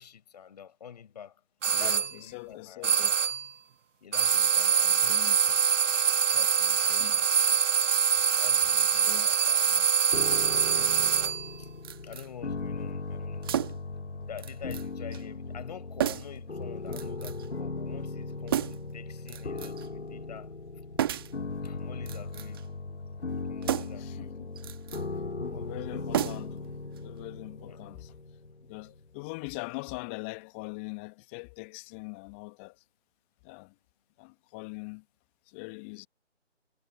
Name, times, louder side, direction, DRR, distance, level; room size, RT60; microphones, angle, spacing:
voice 1, 0.0-1.4 1.8-3.0 4.0-5.6 6.3-7.2 8.4-9.9 10.5-11.7 12.0-13.5 14.3-20.5 21.6-22.8 23.5-24.4 27.7-27.8, left 8 dB, 35° left, 5.8 m, -47 dB
sound 1, 1.6-2.1 2.8-3.5 4.1-11.5, right 7 dB, 85° right, 0.5 m, -24 dB
voice 2, 1.7-3.2 4.8-5.4 7.0-7.2 9.0-9.4 23.9-24.5 25.4-28.1 28.7-32.7 33.4-33.7 34.2-35.0 35.5-36.1, left 30 dB, 10° left, 1.5 m, -42 dB
sound 2, 10.1-29.1, left 3 dB, 65° left, 3.8 m, -38 dB
sound 3, 11.8-12.3 13.4-13.9 14.4-14.9 15.1-15.2 16.0-16.4 16.9-17.5 18.5-18.9 19.3-19.9 21.0-21.4 22.0-22.7 23.6-24.1 24.6-25.0 26.1-26.7 27.0-27.1, right 11 dB, 20° right, 1.6 m, -32 dB
figure-of-eight pair, 150°, 37 cm